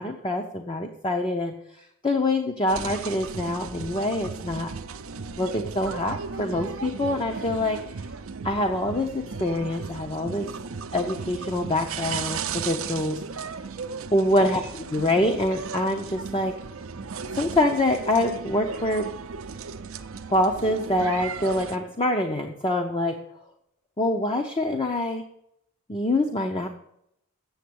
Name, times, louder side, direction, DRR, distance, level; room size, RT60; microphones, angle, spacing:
voice 1, 0.0-1.5 2.0-4.7 5.4-7.8 8.4-10.5 10.9-13.2 14.1-16.6 17.3-19.1 20.3-23.2 24.0-25.3 25.9-26.7, left 1 dB, 20° left, 4 dB, 0.7 m, -25 dB
sound 1, 2.7-21.8, right 5 dB, 65° right, 0.6 m, -36 dB
8.0 x 7.1 x 8.6 m, 0.76 s
head